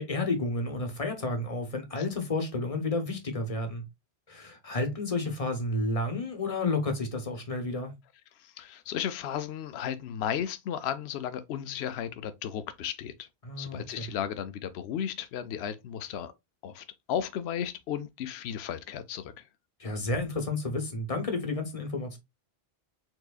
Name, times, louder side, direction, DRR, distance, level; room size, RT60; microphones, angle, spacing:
voice 1, 0.0-3.8 4.3-7.9 13.4-14.1 19.8-22.2, left 2 dB, 35° left, 1.0 m, -31 dB
voice 2, 8.4-13.3 13.6-16.3 16.6-19.3, left 9 dB, 80° left, 0.8 m, -34 dB
4.7 x 3.8 x 2.3 m
omnidirectional pair, 1.1 m